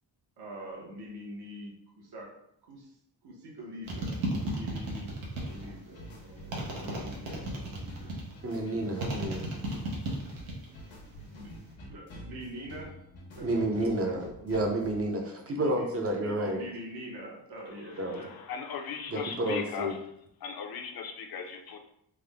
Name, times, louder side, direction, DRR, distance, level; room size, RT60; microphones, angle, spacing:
voice 1, 0.4-2.3 2.7-2.9 3.2-4.1 4.5-8.1 9.3-9.4 11.3-11.5 11.9-12.9 13.4-14.1 15.2-18.3, equal, 60° right, -3 dB, 1.0 m, -45 dB
sound 1, 3.9-5.7 6.5-8.3 9.0-10.7 11.0-11.6, right 1 dB, 85° right, 1.0 m, -34 dB
sound 2, 5.5-15.1, equal, 85° left, 1.0 m, -47 dB
voice 2, 8.4-9.5 13.4-16.6 18.0-18.2 19.1-20.0, right 1 dB, 30° right, 1 dB, 0.6 m, -30 dB
voice 3, 18.1-19.9 20.4-21.8, left 6 dB, 55° left, 3 dB, 0.6 m, -38 dB
3.5 x 2.1 x 3.4 m, 0.75 s
wide cardioid pair, 140°, 45 cm